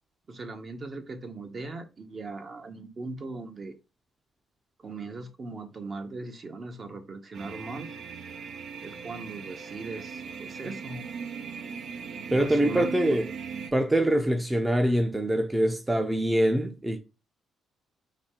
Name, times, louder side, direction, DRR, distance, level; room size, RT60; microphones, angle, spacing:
voice 1, 0.3-3.7 4.8-7.9 8.8-11.1 12.3-13.2, right 3 dB, 40° right, 0.9 m, -39 dB
sound 1, 7.3-13.7, right 6 dB, 65° right, 0.7 m, -39 dB
voice 2, 12.3-13.3 13.7-17.0, right 1 dB, 15° right, 0.6 m, -24 dB
4.1 x 2.7 x 4.4 m
cardioid pair, 90°, 0 cm